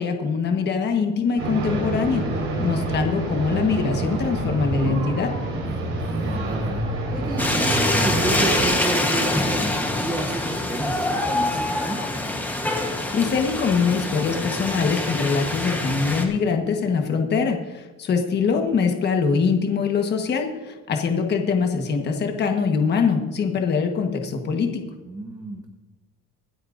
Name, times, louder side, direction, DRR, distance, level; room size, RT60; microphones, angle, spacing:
voice 1, 0.0-5.3 13.1-24.8, left 5 dB, 35° left, 4 dB, 1.4 m, -23 dB
sound 1, 1.4-8.7, right 1 dB, 45° right, 4.6 m, -26 dB
voice 2, 5.7-6.8 7.1-12.0 25.0-25.7, right 1 dB, 10° right, 2 dB, 0.8 m, -31 dB
sound 2, 7.4-16.3, left 1 dB, 5° left, 1.2 m, -25 dB
25.0 x 8.5 x 2.6 m, 1.2 s
cardioid pair, 180°, 30 cm